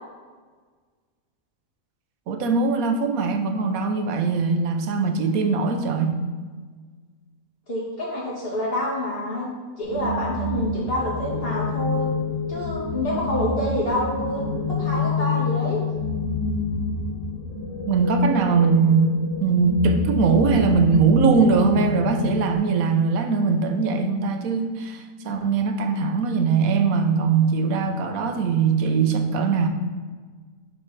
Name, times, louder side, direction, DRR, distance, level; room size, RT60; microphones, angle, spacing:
voice 1, 2.3-6.2 17.9-29.7, right 4 dB, 85° right, 6 dB, 1.2 m, -21 dB
voice 2, 7.7-9.5 9.8-12.1 12.5-14.4 14.8-15.8, left 1 dB, 40° left, -6 dB, 2.4 m, -27 dB
sound 1, 9.8-22.5, left 4 dB, 70° left, 1.7 m, -28 dB
5.8 x 4.4 x 5.8 m, 1.5 s
omnidirectional pair, 1.5 m